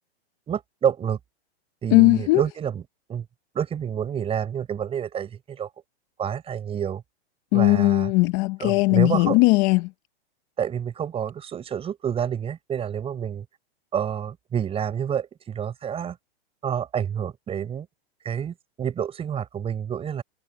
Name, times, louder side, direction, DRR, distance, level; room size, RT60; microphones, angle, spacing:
voice 1, 0.5-1.2 1.8-2.8 3.1-3.3 3.5-5.7 6.2-7.0 7.5-8.1 8.6-9.4 10.6-13.5 13.9-16.2 16.6-17.9 18.2-20.2, right 8 dB, 20° right, 5.6 m, -28 dB
voice 2, 1.9-2.4 7.5-9.9, left 24 dB, 35° left, 0.8 m, -18 dB
hypercardioid pair, 145°, 32 cm